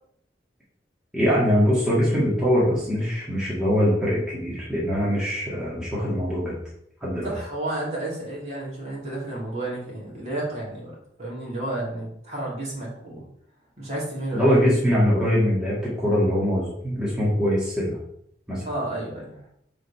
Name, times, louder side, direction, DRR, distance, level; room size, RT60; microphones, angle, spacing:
voice 1, 1.1-6.5 7.0-7.3 14.3-18.0 18.5-18.6, equal, 5° right, -8 dB, 1.6 m, -22 dB
voice 2, 7.2-13.2 13.8-14.5 18.6-19.3, right 1 dB, 40° right, -5 dB, 2.7 m, -31 dB
5.1 x 4.9 x 5.6 m, 0.70 s
head